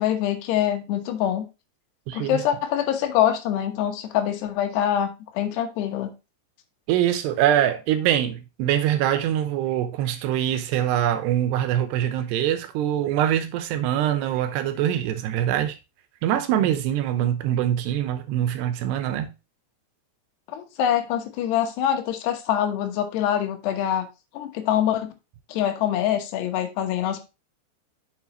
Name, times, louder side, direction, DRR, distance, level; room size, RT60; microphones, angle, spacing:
voice 1, 0.0-1.5 2.1-6.1 20.5-24.1 24.3-25.1 25.5-27.2, left 10 dB, 80° left, 3.2 m, -24 dB
voice 2, 2.1-2.4 6.9-15.8 16.2-19.3, right 11 dB, 85° right, 2.9 m, -23 dB
7.3 x 6.8 x 3.0 m
omnidirectional pair, 4.8 m